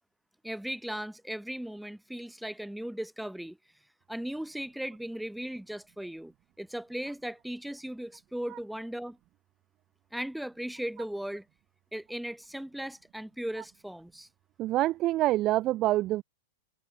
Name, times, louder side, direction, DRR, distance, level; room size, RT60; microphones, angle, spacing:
voice 1, 0.4-3.6 4.1-9.2 10.1-11.5 11.9-14.3, right 1 dB, ahead, 2.0 m, -37 dB
voice 2, 14.6-16.2, right 15 dB, 40° right, 0.5 m, -26 dB
hypercardioid pair, 105°, 0 cm